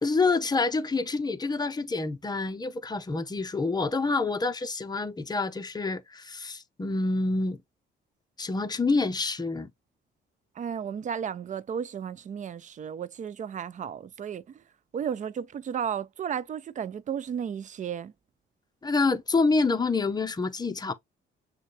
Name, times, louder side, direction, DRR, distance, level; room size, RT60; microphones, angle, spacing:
voice 1, 0.0-7.6 8.4-9.7 18.8-20.9, left 3 dB, 20° left, 0.7 m, -27 dB
voice 2, 10.6-14.6 14.9-18.1, right 8 dB, 40° right, 0.4 m, -34 dB
6.4 x 2.3 x 3.0 m
cardioid pair, 90°, 20 cm